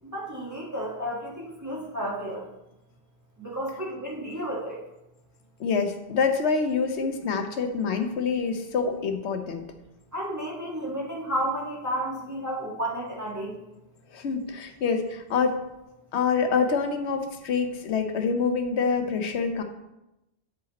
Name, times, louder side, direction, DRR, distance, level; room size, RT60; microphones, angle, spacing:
voice 1, 0.0-2.5 3.4-4.8 10.1-13.6, right 1 dB, 15° right, -5 dB, 1.8 m, -32 dB
voice 2, 5.6-9.6 14.1-15.6 16.1-19.6, left 5 dB, 85° left, 6 dB, 1.1 m, -26 dB
8.9 x 4.9 x 4.1 m, 0.92 s
omnidirectional pair, 1.1 m